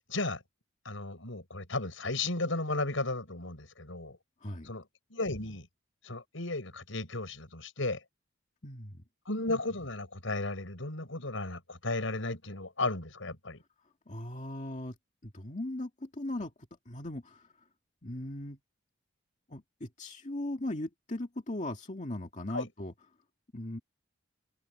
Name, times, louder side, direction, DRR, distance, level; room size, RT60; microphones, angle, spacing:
voice 1, 0.1-0.4 0.8-4.2 4.6-4.8 5.1-5.7 6.0-8.0 9.3-13.6 22.5-22.7, left 2 dB, 75° left, 5.8 m, -34 dB
voice 2, 8.6-9.0 14.1-15.0 15.2-16.5 16.9-17.5 18.0-18.6 19.5-22.9 23.5-23.8, left 1 dB, 40° left, 2.2 m, -38 dB
head